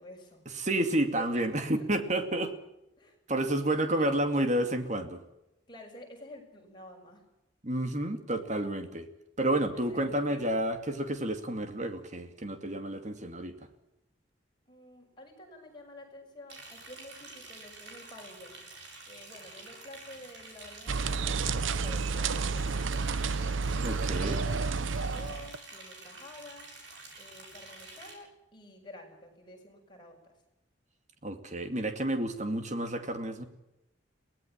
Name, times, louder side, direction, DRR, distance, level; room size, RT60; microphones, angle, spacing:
voice 1, 0.0-0.4 0.8-1.7 3.0-3.2 4.0-4.1 5.7-7.2 9.5-10.6 14.7-18.7 19.1-23.3 24.0-24.6 25.0-26.7 27.1-30.3, left 1 dB, 25° left, 1 dB, 6.4 m, -50 dB
voice 2, 0.5-2.5 3.3-5.2 7.6-9.1 9.4-13.5 23.8-24.4 31.2-33.4, right 1 dB, 40° right, 8 dB, 2.3 m, -30 dB
Liquid, 16.5-28.1, right 3 dB, 65° right, 8.0 m, -48 dB
sound 1, 20.9-25.6, right 4 dB, 85° right, 0.8 m, -30 dB
23.0 x 18.0 x 7.4 m, 0.91 s
head